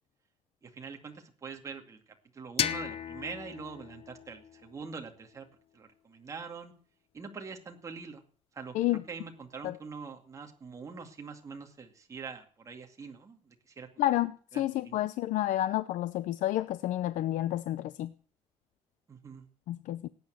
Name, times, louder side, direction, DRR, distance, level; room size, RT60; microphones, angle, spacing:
voice 1, 0.6-2.0 2.3-5.5 5.7-6.7 7.1-8.2 8.5-8.8 9.1-13.9 14.5-15.1 19.1-19.5, right 5 dB, 25° right, 2.2 m, -44 dB
sound 1, 2.6-5.4, left 9 dB, 50° left, 0.9 m, -36 dB
voice 2, 14.0-18.1 19.7-20.1, left 14 dB, 90° left, 0.7 m, -30 dB
18.0 x 9.4 x 7.8 m
cardioid pair, 165°, 13 cm